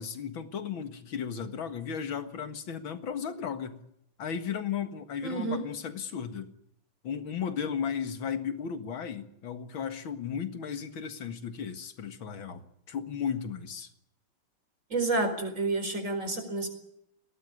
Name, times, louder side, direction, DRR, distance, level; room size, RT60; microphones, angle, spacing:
voice 1, 0.0-3.8 4.2-6.5 7.0-13.9, left 7 dB, 75° left, 8 dB, 2.5 m, -35 dB
voice 2, 5.2-5.6 14.9-16.7, right 2 dB, 40° right, 7 dB, 4.9 m, -29 dB
21.5 x 18.5 x 9.7 m, 0.79 s
omnidirectional pair, 2.2 m